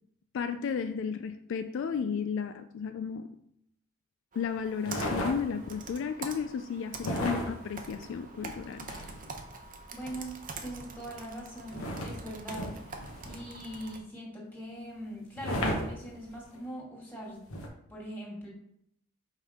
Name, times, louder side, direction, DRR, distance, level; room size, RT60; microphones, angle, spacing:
voice 1, 0.3-3.3 4.3-8.9, left 6 dB, 60° left, 9 dB, 0.3 m, -33 dB
Computer keyboard, 4.3-14.0, right 4 dB, 40° right, 0.7 m, -45 dB
sound 1, 4.8-5.8 7.0-9.4 11.7-13.6 15.4-16.6 17.5-17.7, equal, 85° left, 1.2 m, -35 dB
voice 2, 9.9-10.3 10.6-12.6 13.2-17.5 17.9-18.5, equal, 10° left, -4 dB, 2.1 m, -41 dB
5.5 x 5.3 x 3.6 m, 0.74 s
head